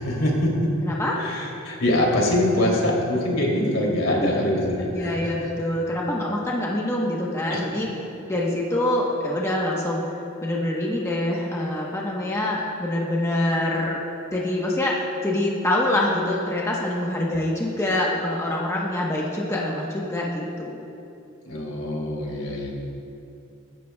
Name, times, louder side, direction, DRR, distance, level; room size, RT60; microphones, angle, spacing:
voice 1, 0.0-0.7 1.1-5.4 7.5-7.6 21.5-22.7, left 1 dB, 70° left, -3 dB, 3.0 m, -23 dB
voice 2, 0.8-1.2 4.2-4.3 4.9-7.9 8.3-10.0 10.4-14.0 14.3-20.9, left 1 dB, 15° left, -4 dB, 1.1 m, -25 dB
23.0 x 11.0 x 2.3 m, 2.6 s
head